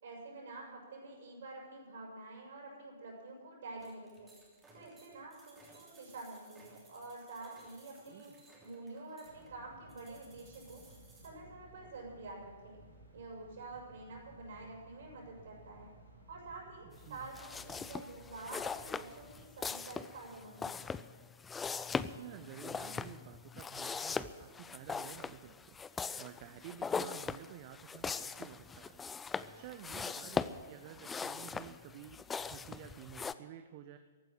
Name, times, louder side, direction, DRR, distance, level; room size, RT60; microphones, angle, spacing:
voice 1, 0.0-4.3 4.7-8.3 8.6-10.8 11.2-12.8 13.1-15.9 16.3-20.7, right 3 dB, 55° right, -2 dB, 6.0 m, -48 dB
sound 1, 3.8-11.3, right 2 dB, 10° right, 3.1 m, -62 dB
sound 2, 9.2-19.4, right 1 dB, 85° left, 6.4 m, -58 dB
voice 2, 16.8-17.3 22.2-25.8 26.2-29.0 29.5-34.0, right 11 dB, 35° right, 9 dB, 0.7 m, -51 dB
sound 3, 17.3-33.3, left 5 dB, 10° left, 0.4 m, -40 dB
15.0 x 9.1 x 9.1 m, 1.5 s
figure-of-eight pair, 115°, 0 cm